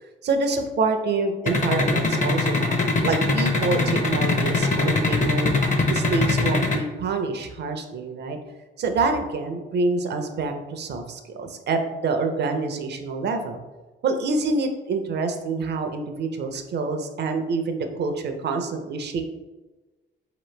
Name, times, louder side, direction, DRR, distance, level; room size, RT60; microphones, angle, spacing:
voice 1, 0.2-5.5 5.9-8.4 8.8-13.6 14.0-19.2, right 3 dB, 60° right, 6 dB, 0.6 m, -26 dB
sound 1, 1.5-6.8, left 3 dB, 40° left, 0.7 m, -21 dB
4.5 x 3.0 x 3.2 m, 1.2 s
cardioid pair, 90°, 20 cm